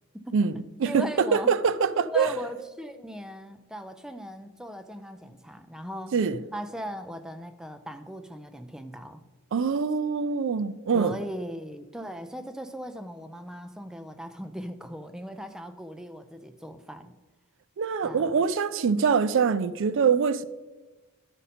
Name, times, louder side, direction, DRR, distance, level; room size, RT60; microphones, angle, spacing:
voice 1, 0.1-0.5 0.8-1.5 1.9-6.1 6.5-9.2 10.9-17.1 18.0-18.4, equal, 5° right, 0.4 m, -38 dB
voice 2, 0.8-2.4 6.1-6.4 9.5-11.2 17.8-20.4, right 6 dB, 60° right, 0.4 m, -24 dB
12.5 x 5.3 x 4.2 m
head